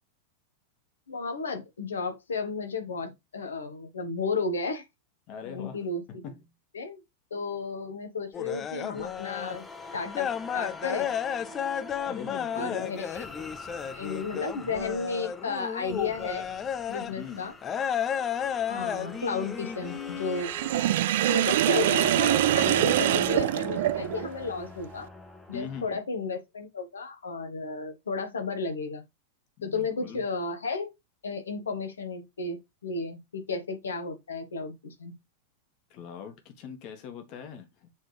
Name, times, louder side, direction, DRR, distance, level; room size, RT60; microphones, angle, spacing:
voice 1, 1.1-4.8 5.4-6.2 6.7-7.0 7.3-9.6 9.9-10.3 10.5-11.1 12.5-13.2 13.9-16.5 16.9-17.5 18.7-20.5 21.3-25.1 25.5-29.0 29.6-30.9 31.2-35.1, left 4 dB, 70° left, 1.4 m, -33 dB
voice 2, 5.3-5.8 6.1-6.4 12.1-12.9 17.1-17.5 25.5-26.0 29.6-30.2 35.9-37.9, left 7 dB, 40° left, 1.6 m, -41 dB
sound 1, 8.3-9.6 9.9-17.1 17.6-20.4, left 8 dB, 25° left, 0.5 m, -33 dB
sound 2, 8.9-25.9, left 2 dB, 10° left, 1.0 m, -43 dB
Sink (filling or washing), 20.4-24.3, right 13 dB, 55° right, 0.3 m, -24 dB
7.2 x 3.8 x 3.4 m
figure-of-eight pair, 90°, 0 cm